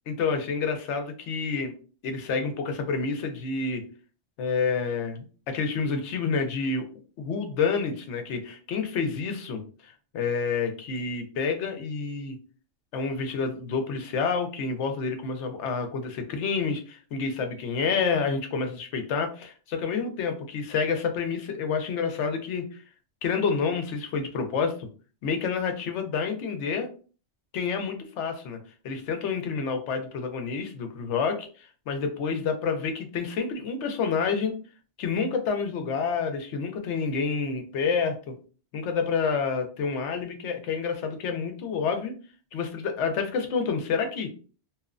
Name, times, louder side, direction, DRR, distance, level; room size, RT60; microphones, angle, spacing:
voice 1, 0.1-1.7 2.0-3.8 4.4-6.8 7.2-12.4 12.9-22.8 23.2-24.8 25.2-26.9 27.5-28.6 28.8-34.6 35.0-38.4 38.7-42.1 42.5-44.3, left 5 dB, 80° left, 6 dB, 0.9 m, -28 dB
2.8 x 2.1 x 2.4 m, 0.37 s
omnidirectional pair, 1.2 m